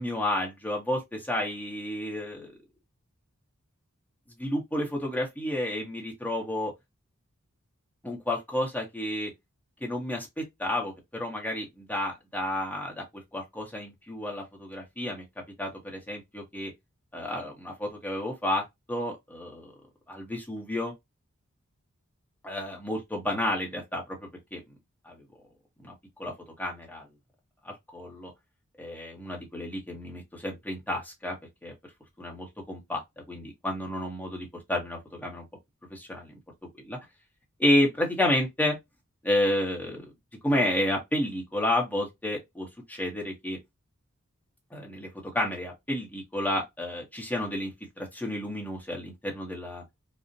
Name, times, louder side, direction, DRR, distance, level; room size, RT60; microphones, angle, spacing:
voice 1, 0.0-2.5 4.4-6.7 8.0-9.3 9.8-13.0 13.3-15.2 15.6-16.7 17.1-19.7 20.1-20.9 22.4-24.6 25.0-25.2 25.8-25.9 26.2-26.3 26.6-27.0 27.6-28.3 28.8-31.4 31.6-31.7 32.2-35.4 35.9-36.3 36.8-37.0 37.6-38.8 39.2-40.0 40.4-43.6 44.7-45.1 45.3-49.8, left 1 dB, 10° left, 0.7 m, -31 dB
2.4 x 2.0 x 2.5 m
head